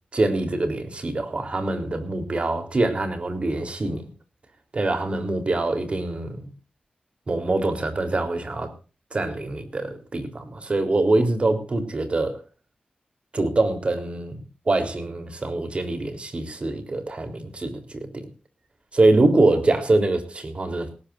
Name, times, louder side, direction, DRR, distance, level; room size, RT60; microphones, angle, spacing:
voice 1, 0.1-4.1 4.7-6.5 7.3-8.7 9.1-12.4 13.3-18.3 18.9-20.9, right 2 dB, 40° right, 7 dB, 3.7 m, -24 dB
19.5 x 18.0 x 2.6 m, 0.35 s
wide cardioid pair, 135°, 3 cm